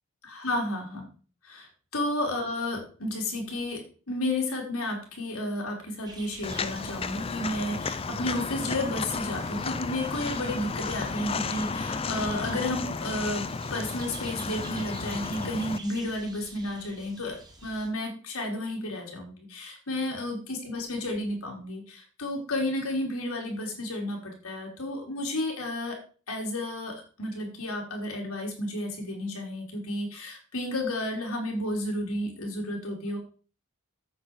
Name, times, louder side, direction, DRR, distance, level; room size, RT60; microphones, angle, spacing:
voice 1, 0.2-1.1 1.4-1.6 1.9-26.0 26.3-33.2, left 1 dB, 80° left, 0 dB, 3.8 m, -32 dB
sound 1, 6.0-17.9, right 3 dB, 20° right, 2.0 m, -49 dB
Walk footsteps, 6.4-15.8, left 4 dB, 25° left, 0.5 m, -33 dB
9.6 x 8.4 x 4.7 m, 0.38 s
head